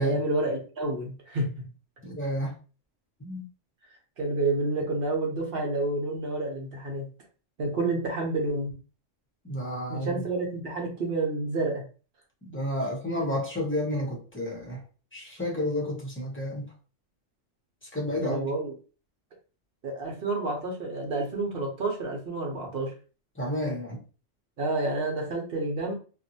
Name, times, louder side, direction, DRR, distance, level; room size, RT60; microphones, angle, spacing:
voice 1, 0.0-1.5 4.2-7.1 7.6-8.8 9.9-11.8 18.2-18.7 19.8-22.9 24.6-25.9, right 2 dB, 50° right, 0.9 m, -29 dB
voice 2, 2.0-2.5 3.2-3.5 9.4-10.2 12.5-14.8 15.1-16.7 17.8-18.4 23.4-24.0, left 1 dB, 15° left, 0.6 m, -30 dB
2.6 x 2.3 x 2.6 m
omnidirectional pair, 1.3 m